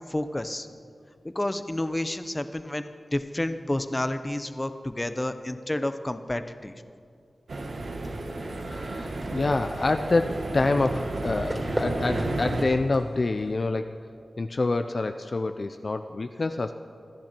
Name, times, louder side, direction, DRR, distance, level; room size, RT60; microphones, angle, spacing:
voice 1, 0.1-0.7 1.2-6.7, left 1 dB, 20° left, 10 dB, 0.8 m, -30 dB
sound 1, 7.5-12.6, right 2 dB, 75° right, 1.6 m, -32 dB
sound 2, 8.0-13.7, equal, 15° right, 3.2 m, -38 dB
voice 2, 8.7-14.0 14.4-16.7, left 3 dB, 50° left, 7 dB, 0.5 m, -27 dB
27.0 x 10.5 x 4.5 m, 2.3 s
wide cardioid pair, 90°, 0 cm